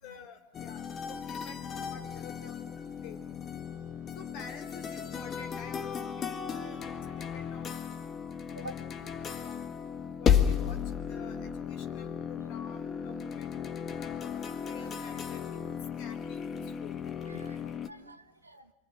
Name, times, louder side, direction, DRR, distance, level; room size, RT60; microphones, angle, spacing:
voice 1, 0.0-3.2 4.2-8.0 8.6-9.6 10.2-13.6 13.9-17.0, left 6 dB, 45° left, 8 dB, 3.7 m, -50 dB
sound 1, 0.5-17.9, left 8 dB, 25° left, 1.8 m, -34 dB
voice 2, 17.2-18.7, right 2 dB, 80° right, 8 dB, 1.7 m, -48 dB
28.5 x 25.5 x 6.2 m, 0.87 s
figure-of-eight pair, 90°, 0 cm